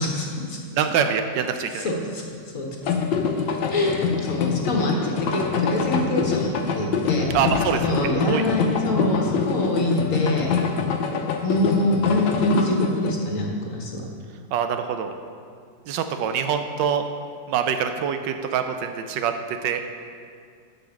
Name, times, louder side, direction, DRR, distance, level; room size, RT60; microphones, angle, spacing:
voice 1, 0.0-0.6 1.7-2.3 2.5-2.7 3.7-7.3 7.8-10.5 11.4-14.0, left 1 dB, 50° left, 0 dB, 1.3 m, -25 dB
voice 2, 0.8-1.9 7.3-8.4 14.5-15.1 15.9-17.1 17.5-19.8, right 7 dB, 75° right, 7 dB, 1.3 m, -25 dB
sound 1, 2.8-13.1, left 6 dB, 80° left, 1.4 m, -25 dB
sound 2, 6.3-7.9, left 1 dB, 30° right, 2.0 m, -40 dB
8.0 x 5.7 x 7.1 m, 2.2 s
omnidirectional pair, 2.0 m